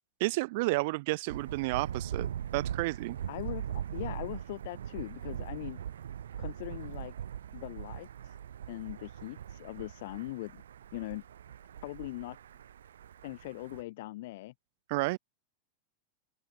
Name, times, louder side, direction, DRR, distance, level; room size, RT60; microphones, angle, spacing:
voice 1, 0.2-3.2 14.9-15.2, right 23 dB, 50° right, 2.1 m, -31 dB
Thunder, 1.3-13.8, right 9 dB, 65° right, 2.1 m, -41 dB
voice 2, 3.3-5.8 6.4-7.1 7.5-8.4 8.7-10.6 10.9-11.2 11.8-12.4 13.2-14.5, left 18 dB, 50° left, 4.9 m, -41 dB
open air
figure-of-eight pair, 90°, 0 cm